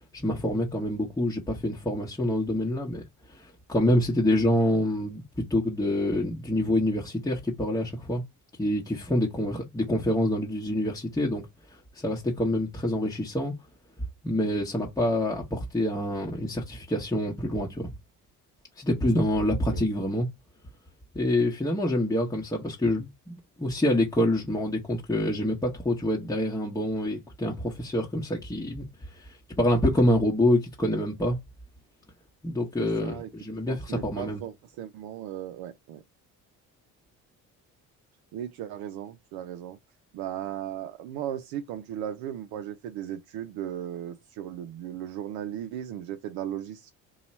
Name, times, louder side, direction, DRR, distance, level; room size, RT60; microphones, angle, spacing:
voice 1, 0.1-3.0 3.3-5.2 5.5-8.2 8.6-11.4 11.7-13.5 14.2-17.9 18.8-20.3 21.1-31.4 32.4-34.4, left 1 dB, 10° left, 1.0 m, -26 dB
voice 2, 32.8-33.3 33.7-36.0 38.3-39.8 40.1-46.9, right 10 dB, 70° right, 0.6 m, -36 dB
2.8 x 2.3 x 4.1 m
supercardioid pair, 70°, 38 cm